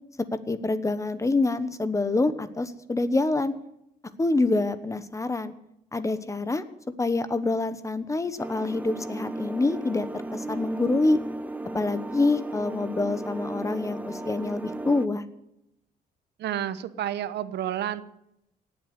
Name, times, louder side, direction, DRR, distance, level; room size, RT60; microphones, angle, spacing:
voice 1, 0.5-3.5 4.2-5.5 5.9-6.6 7.0-11.2 11.7-15.2, left 2 dB, 20° left, 13 dB, 1.2 m, -26 dB
sound 1, 8.4-15.1, right 2 dB, 10° right, 0.6 m, -35 dB
voice 2, 16.4-18.0, right 11 dB, 80° right, 14 dB, 1.0 m, -30 dB
17.5 x 7.8 x 9.7 m, 0.82 s
cardioid pair, 115°, 17 cm